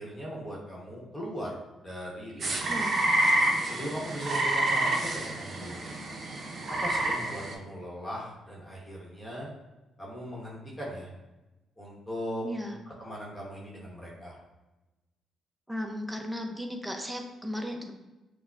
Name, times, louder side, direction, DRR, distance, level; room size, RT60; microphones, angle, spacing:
voice 1, 0.0-2.8 3.6-6.0 6.8-9.5 10.0-11.1 11.8-12.4 13.0-14.4, equal, 20° left, -4 dB, 1.1 m, -39 dB
sound 1, 2.4-7.5, right 1 dB, 45° right, 0.7 m, -28 dB
voice 2, 2.7-3.1 12.4-12.8 15.7-17.9, equal, 5° right, 3 dB, 0.6 m, -35 dB
5.5 x 2.1 x 2.4 m, 1.1 s
cardioid pair, 90°, 0 cm